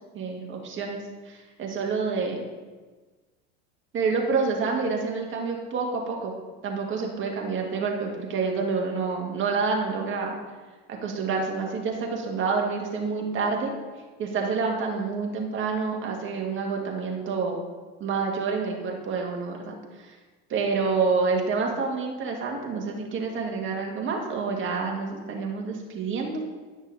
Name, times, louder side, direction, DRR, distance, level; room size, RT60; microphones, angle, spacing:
voice 1, 0.1-1.0 1.3-2.5 3.9-6.3 6.6-10.4 10.9-13.7 14.2-17.6 18.0-20.2 20.5-26.4, right 4 dB, 35° right, 0 dB, 2.0 m, -28 dB
10.5 x 6.2 x 4.1 m, 1.3 s
supercardioid pair, 105°, 33 cm